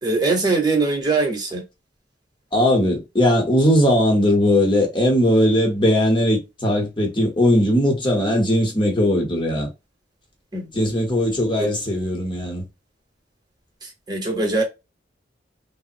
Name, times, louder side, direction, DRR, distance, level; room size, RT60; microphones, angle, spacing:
voice 1, 0.0-1.6 10.5-10.7 11.6-11.7 13.8-14.6, right 3 dB, 20° right, 0.9 m, -22 dB
voice 2, 2.5-9.7 10.7-12.7, left 1 dB, 25° left, 1.0 m, -19 dB
3.4 x 2.0 x 2.6 m
head